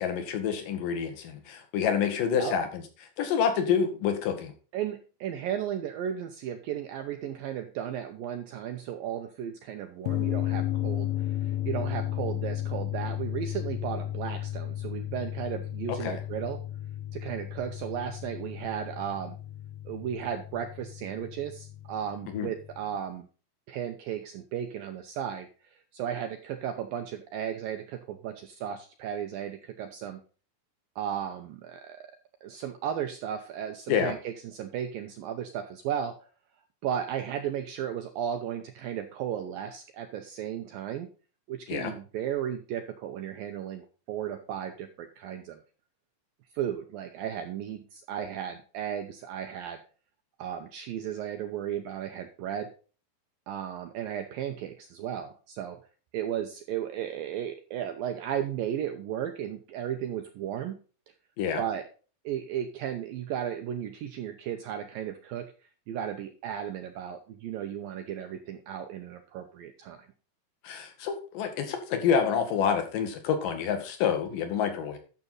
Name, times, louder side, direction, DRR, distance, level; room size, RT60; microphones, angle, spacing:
voice 1, 0.0-2.7 3.2-4.5 16.0-16.2 22.3-22.5 33.9-34.1 41.7-41.9 61.4-61.6 70.6-75.0, left 7 dB, 55° left, 7 dB, 3.0 m, -28 dB
voice 2, 4.7-16.6 17.1-19.4 19.9-23.3 23.7-30.2 31.0-32.1 32.4-36.2 36.8-41.1 41.5-45.6 46.5-49.8 50.4-52.7 53.5-55.8 56.1-60.8 61.6-61.8 62.3-65.5 65.9-70.0, right 9 dB, 85° right, 6 dB, 2.1 m, -35 dB
sound 1, 10.1-23.0, left 13 dB, 85° left, 3.1 m, -34 dB
12.0 x 6.9 x 4.0 m, 0.37 s
omnidirectional pair, 5.2 m